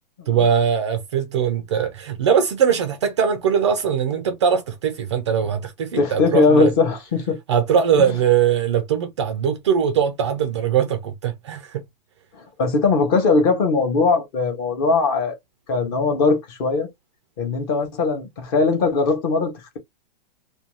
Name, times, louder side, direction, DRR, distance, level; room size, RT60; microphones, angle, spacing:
voice 1, 0.3-6.7 7.5-11.8, right 8 dB, 30° right, 0.4 m, -21 dB
voice 2, 6.0-7.4 7.9-8.1 12.6-15.4 15.7-16.9 17.4-19.8, left 4 dB, 25° left, 0.7 m, -20 dB
2.5 x 2.2 x 2.9 m
hypercardioid pair, 160°, 29 cm